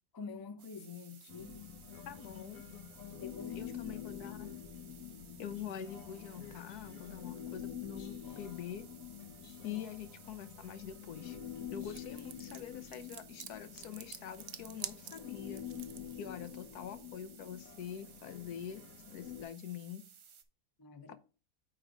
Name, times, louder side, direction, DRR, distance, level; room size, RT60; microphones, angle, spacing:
voice 1, 0.1-1.7 3.2-4.0 9.7-9.8 20.8-21.1, left 5 dB, 30° left, 0.4 m, -46 dB
sound 1, 0.6-20.4, right 7 dB, 60° right, 1.2 m, -58 dB
Human voice, 1.3-19.5, left 9 dB, 65° left, 1.2 m, -47 dB
voice 2, 2.1-2.6 3.5-4.5 5.4-8.9 9.6-11.4 11.7-15.6 16.2-18.8 19.1-20.0 21.1-21.2, left 9 dB, 85° left, 1.3 m, -45 dB
sound 2, 12.0-16.1, right 12 dB, 75° right, 1.1 m, -46 dB
8.8 x 3.5 x 4.9 m
omnidirectional pair, 1.6 m